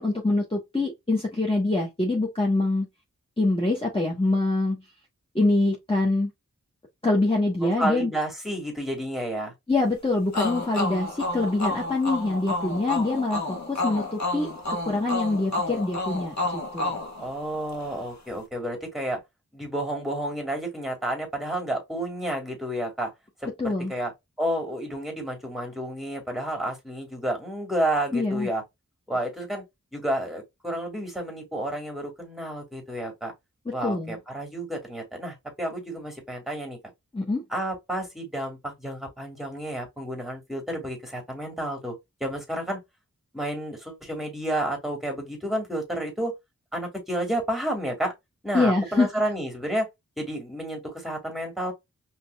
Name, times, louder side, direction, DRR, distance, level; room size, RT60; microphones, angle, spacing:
voice 1, 0.0-2.9 3.4-4.8 5.3-6.3 7.0-8.1 9.7-17.0 23.6-23.9 28.1-28.5 33.8-34.2 37.1-37.4 48.5-49.1, left 2 dB, 15° left, 1.2 m, -25 dB
voice 2, 7.6-9.5 17.2-19.2 19.5-23.1 23.4-24.1 24.4-28.6 29.1-29.6 29.9-33.3 33.7-36.8 37.5-41.9 42.2-42.8 43.3-46.3 46.7-48.1 48.4-49.9 50.2-51.7, right 1 dB, ahead, 2.1 m, -30 dB
sound 1, 10.3-17.9, left 2 dB, 60° left, 1.4 m, -30 dB
5.2 x 3.1 x 2.3 m
wide cardioid pair, 65°, 31 cm